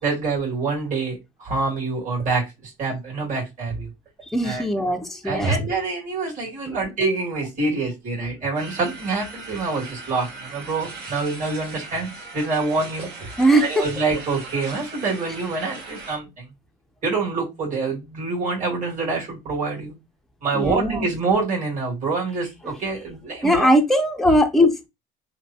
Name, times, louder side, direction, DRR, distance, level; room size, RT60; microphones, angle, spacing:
voice 1, 0.0-3.9 4.4-4.6 5.2-13.3 13.6-16.5 17.0-19.9 20.4-23.7, right 3 dB, 40° right, 2.0 m, -26 dB
voice 2, 4.3-5.6 6.6-6.8 13.4-13.8 20.5-21.1 23.4-24.9, equal, ahead, 0.5 m, -20 dB
sound 1, 8.5-16.2, right 3 dB, 60° right, 1.3 m, -39 dB
3.2 x 2.2 x 2.7 m
cardioid pair, 105°, 19 cm